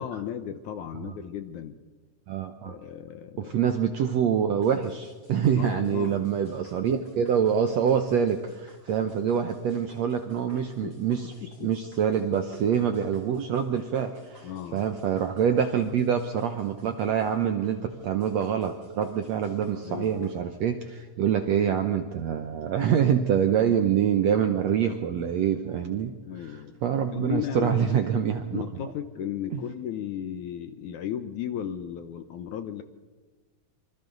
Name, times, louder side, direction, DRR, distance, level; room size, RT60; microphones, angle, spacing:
voice 1, 0.0-1.8 2.6-3.5 5.5-6.2 10.5-11.0 11.4-11.7 14.4-14.8 19.8-20.3 26.3-26.7 27.1-28.1 28.5-32.8, left 9 dB, 70° left, 9 dB, 2.1 m, -35 dB
voice 2, 2.3-2.8 3.4-11.3 11.6-28.6 29.5-29.6, right 8 dB, 70° right, 7 dB, 1.6 m, -26 dB
sound 1, 4.6-20.3, equal, 20° left, 5.9 m, -53 dB
26.5 x 25.5 x 4.0 m, 1.3 s
omnidirectional pair, 4.2 m